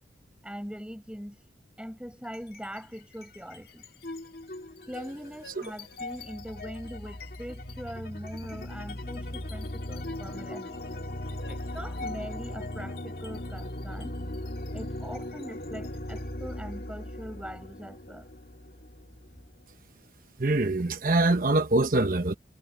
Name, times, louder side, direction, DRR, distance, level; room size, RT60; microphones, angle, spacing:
voice 1, 0.4-1.4 1.8-3.8 4.9-10.9 11.5-14.1 14.7-18.3, equal, 5° right, 6.5 m, -41 dB
sound 1, 2.2-2.8 3.1-19.7, left 1 dB, 60° left, 2.0 m, -39 dB
voice 2, 20.4-22.3, right 2 dB, 50° right, 1.1 m, -24 dB
head